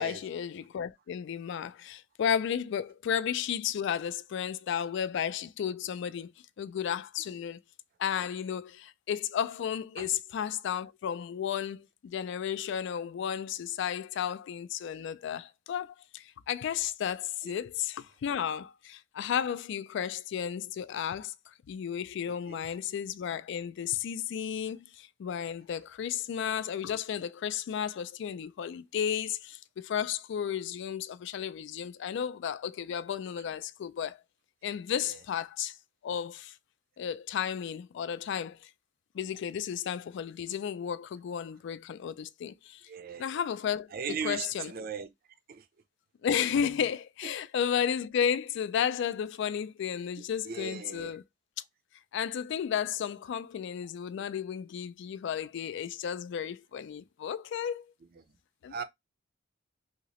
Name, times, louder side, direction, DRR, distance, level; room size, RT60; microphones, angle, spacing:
voice 1, 0.0-6.3 6.6-7.6 8.0-34.2 34.6-35.8 36.0-36.6 37.0-38.7 39.1-42.8 43.2-44.7 46.2-51.2 52.1-57.9 58.6-58.8, left 8 dB, 65° left, 0.3 m, -33 dB
voice 2, 22.3-22.6 42.9-43.3 43.9-45.1 45.5-45.6 47.2-47.3 50.5-51.1 58.7-58.8, right 6 dB, 50° right, 0.5 m, -38 dB
2.8 x 2.8 x 2.9 m
head